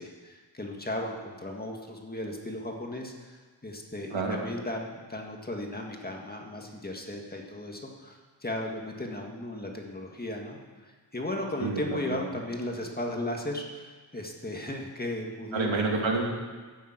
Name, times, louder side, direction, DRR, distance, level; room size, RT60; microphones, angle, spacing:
voice 1, 0.0-15.9, left 1 dB, 20° left, 1 dB, 1.8 m, -36 dB
voice 2, 11.6-12.2 15.5-16.2, right 3 dB, 90° right, 0 dB, 2.6 m, -28 dB
15.0 x 7.2 x 8.9 m, 1.4 s
wide cardioid pair, 145°, 44 cm